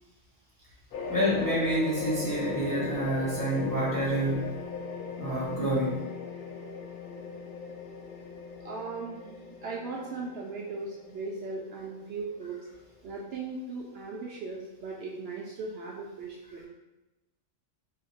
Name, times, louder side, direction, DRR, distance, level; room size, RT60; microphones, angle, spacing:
sound 1, 0.9-13.7, left 4 dB, 60° left, 0.6 m, -39 dB
voice 1, 1.1-4.5 5.2-6.0, equal, 20° left, -7 dB, 0.7 m, -28 dB
voice 2, 8.6-12.6 13.0-16.7, right 3 dB, 65° right, -3 dB, 0.7 m, -38 dB
4.2 x 2.8 x 2.7 m, 1.0 s
omnidirectional pair, 1.3 m